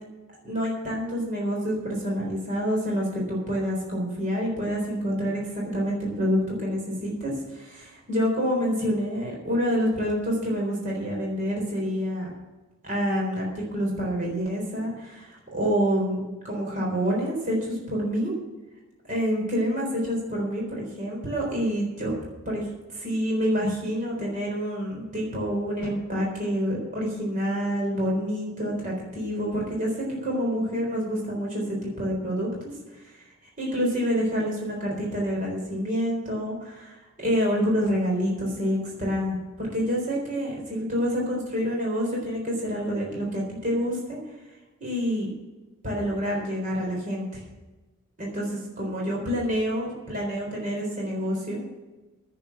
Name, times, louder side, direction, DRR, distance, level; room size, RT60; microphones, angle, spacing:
voice 1, 0.4-12.3 12.8-18.3 19.1-22.1 22.5-22.6 22.9-32.5 33.1-33.2 33.6-44.2 44.8-45.3 45.8-47.4 48.2-51.6, equal, 35° right, -2 dB, 3.9 m, -27 dB
10.5 x 9.1 x 7.6 m, 1.1 s
head